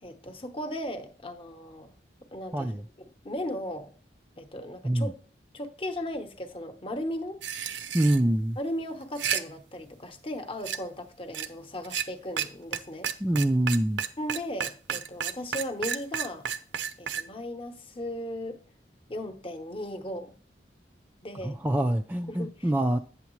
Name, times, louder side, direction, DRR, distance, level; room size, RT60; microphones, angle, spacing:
voice 1, 0.0-1.9 2.3-2.7 3.2-3.9 4.4-5.2 5.5-7.4 8.6-13.1 14.2-16.5 17.0-18.6 19.1-20.3 21.2-21.6 22.3-22.5, left 1 dB, 30° left, 0.9 m, -36 dB
voice 2, 2.5-2.8 4.8-5.1 7.9-8.6 13.2-14.0 21.4-23.0, right 1 dB, 10° right, 0.3 m, -25 dB
sound 1, 7.4-8.2 9.0-9.4 10.6-10.8 11.3-11.5 11.8-12.1 12.4-12.5 12.7-12.8 13.0-17.2, right 8 dB, 85° right, 0.6 m, -31 dB
8.8 x 7.0 x 3.1 m
head